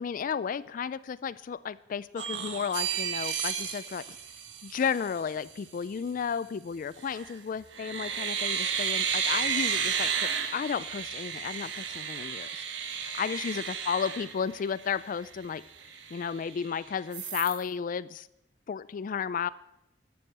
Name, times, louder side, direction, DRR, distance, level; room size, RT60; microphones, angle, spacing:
voice 1, 0.0-4.1 4.6-12.6 13.0-15.6 16.1-18.3 18.7-19.5, left 7 dB, 50° left, 17 dB, 0.3 m, -33 dB
sound 1, 2.2-5.2 7.0-7.4 7.7-15.0 15.4-15.5 15.8-16.7 17.1-17.6, right 7 dB, 85° right, 1.2 m, -32 dB
12.0 x 7.0 x 7.8 m, 0.84 s
head